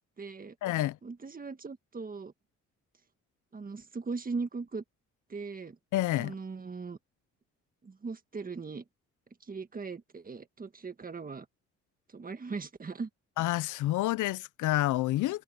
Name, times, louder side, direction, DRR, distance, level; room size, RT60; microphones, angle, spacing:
voice 1, 0.0-0.5 1.0-2.3 3.5-4.8 5.3-5.8 6.2-7.0 7.8-8.8 9.4-11.5 12.1-13.1, right 4 dB, 30° right, 1.6 m, -39 dB
voice 2, 0.6-1.0 5.9-6.4 13.4-15.4, left 15 dB, 80° left, 0.7 m, -28 dB
cardioid pair, 90°, 30 cm